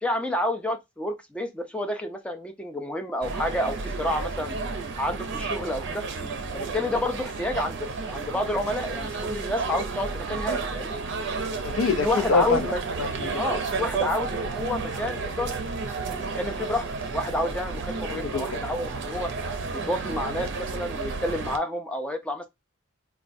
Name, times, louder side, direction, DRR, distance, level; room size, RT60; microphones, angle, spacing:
voice 1, 0.0-4.6 5.0-6.0 6.5-11.0 12.0-12.8 13.4-15.5 16.1-16.9 17.1-19.3 19.7-22.5, left 1 dB, 5° left, 0.3 m, -29 dB
sound 1, 3.2-21.6, right 4 dB, 60° right, 0.5 m, -32 dB
voice 2, 11.6-13.4 18.1-18.5, left 5 dB, 80° left, 0.5 m, -26 dB
4.0 x 2.2 x 2.5 m
head